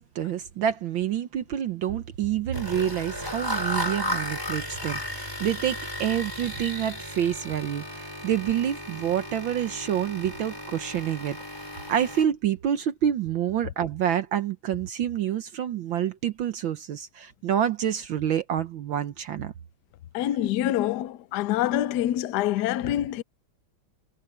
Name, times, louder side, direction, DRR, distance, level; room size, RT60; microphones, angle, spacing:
voice 1, 0.0-19.5, right 10 dB, 65° right, 1.6 m, -28 dB
sound 1, 2.5-12.2, equal, 10° left, 5.5 m, -34 dB
voice 2, 20.1-23.2, left 12 dB, 70° left, 1.0 m, -26 dB
omnidirectional pair, 2.4 m